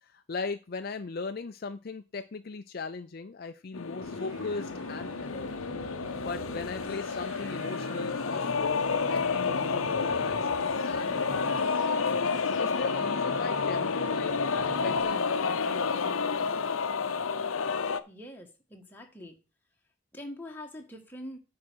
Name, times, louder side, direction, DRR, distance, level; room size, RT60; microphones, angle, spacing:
voice 1, 0.0-5.5 6.2-10.5 10.8-11.9 12.6-14.4 14.6-16.2, left 4 dB, 45° left, 8 dB, 0.5 m, -38 dB
sound 1, 3.7-18.0, left 5 dB, 80° left, 0.7 m, -30 dB
sound 2, 4.0-15.0, right 4 dB, 70° right, 0.6 m, -45 dB
voice 2, 18.1-19.4 20.1-21.4, left 1 dB, 10° left, 1 dB, 1.5 m, -44 dB
8.7 x 4.8 x 6.2 m, 0.31 s
head